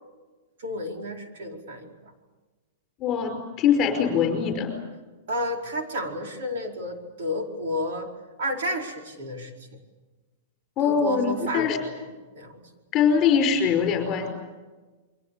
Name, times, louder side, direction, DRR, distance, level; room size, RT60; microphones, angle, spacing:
voice 1, 0.6-2.0 3.7-3.8 5.3-8.1 8.4-9.5 10.8-12.0 12.3-12.6, equal, 65° right, 2 dB, 4.9 m, -31 dB
voice 2, 3.0-4.7 10.8-11.8 12.9-14.3, left 7 dB, 20° left, 4 dB, 5.0 m, -22 dB
30.0 x 23.5 x 7.0 m, 1.2 s
supercardioid pair, 180°, 0 cm